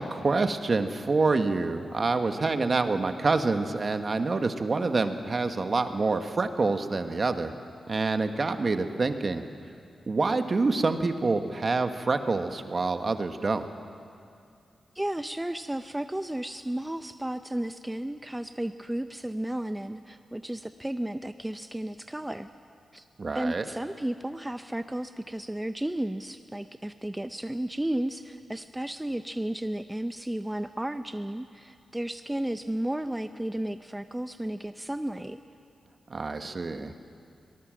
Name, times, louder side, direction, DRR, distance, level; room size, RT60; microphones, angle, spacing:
voice 1, 0.0-7.5 7.9-9.4 10.1-13.6 23.2-23.6 36.1-36.9, right 3 dB, 45° right, 8 dB, 1.4 m, -27 dB
voice 2, 14.9-22.5 22.9-23.0 23.3-35.4, right 1 dB, 10° right, 9 dB, 0.6 m, -33 dB
22.5 x 19.0 x 7.6 m, 2.4 s
cardioid pair, 75°, 0 cm